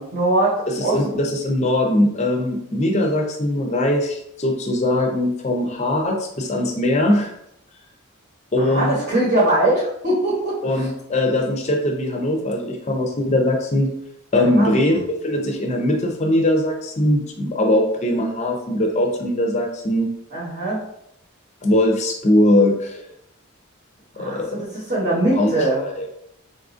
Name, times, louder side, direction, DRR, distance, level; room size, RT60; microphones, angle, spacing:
voice 1, 0.0-1.0 8.6-10.9 14.3-14.7 20.3-20.8 24.2-25.8, right 1 dB, 40° right, -6 dB, 0.9 m, -21 dB
voice 2, 0.7-7.3 8.5-9.0 10.6-13.9 14.3-20.1 21.6-23.0 24.2-24.6 25.3-26.1, left 1 dB, 30° left, 2 dB, 0.5 m, -21 dB
4.0 x 2.4 x 2.5 m, 0.75 s
head